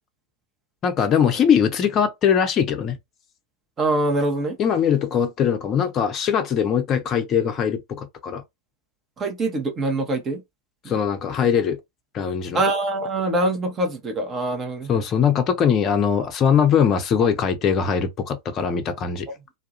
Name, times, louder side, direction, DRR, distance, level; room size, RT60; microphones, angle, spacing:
voice 1, 0.8-3.0 4.6-8.4 10.9-11.8 12.1-12.6 14.9-19.3, left 7 dB, 30° left, 0.5 m, -21 dB
voice 2, 3.8-4.6 9.2-10.4 10.8-10.9 12.5-14.9, right 2 dB, 25° right, 0.6 m, -24 dB
2.3 x 2.0 x 2.7 m
figure-of-eight pair, 90°, 0 cm